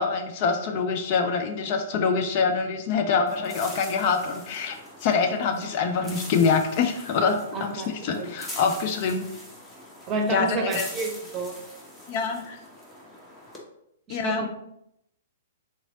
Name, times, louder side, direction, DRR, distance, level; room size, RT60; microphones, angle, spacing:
voice 1, 0.0-9.3 10.3-10.9 12.1-12.6 14.1-14.5, left 5 dB, 40° left, 5 dB, 0.5 m, -25 dB
sound 1, 3.3-13.6, left 1 dB, 10° left, 0.8 m, -43 dB
voice 2, 7.5-7.9 8.2-8.3 10.1-11.5 14.1-14.5, right 3 dB, 25° right, 2 dB, 0.8 m, -29 dB
3.7 x 3.1 x 3.8 m, 0.77 s
figure-of-eight pair, 110°, 0 cm